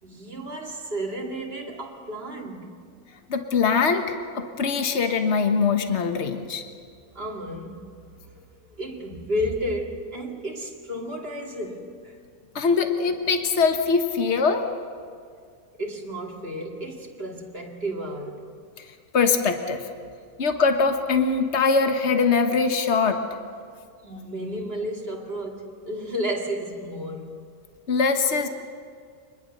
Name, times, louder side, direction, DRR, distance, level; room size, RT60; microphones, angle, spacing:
voice 1, 0.0-2.8 7.1-7.9 8.2-12.2 15.8-18.4 24.0-27.4, equal, 45° right, 2.7 m, -32 dB
voice 2, 3.3-6.6 12.5-14.7 19.1-19.8 20.4-23.2 27.9-28.5, left 5 dB, 55° left, 1.6 m, -22 dB
26.5 x 20.5 x 6.6 m
omnidirectional pair, 1.5 m